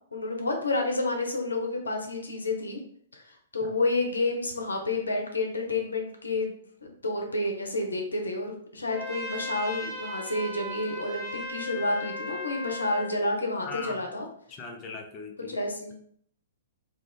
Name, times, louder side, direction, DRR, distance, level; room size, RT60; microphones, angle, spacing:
voice 1, 0.1-2.8 3.1-6.6 6.8-14.3 15.5-15.9, left 2 dB, 80° left, 2 dB, 0.7 m, -30 dB
Trumpet, 8.9-13.2, left 1 dB, 5° left, 0.9 m, -37 dB
voice 2, 13.6-14.1 14.5-15.6, left 4 dB, 25° left, 3 dB, 0.5 m, -39 dB
2.5 x 2.4 x 3.6 m, 0.64 s
figure-of-eight pair, 115°, 0 cm